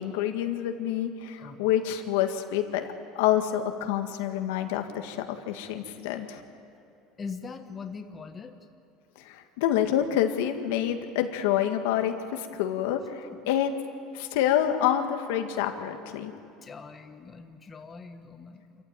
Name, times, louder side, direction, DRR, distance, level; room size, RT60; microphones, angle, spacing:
voice 1, 0.0-2.9 3.2-6.4 9.2-13.7 14.1-16.3, left 11 dB, 85° left, 5 dB, 1.8 m, -27 dB
voice 2, 1.4-1.7 7.2-8.6 13.3-13.4 16.6-18.8, left 5 dB, 20° left, 6 dB, 1.2 m, -41 dB
26.5 x 15.0 x 9.0 m, 2.7 s
cardioid pair, 140°, 0 cm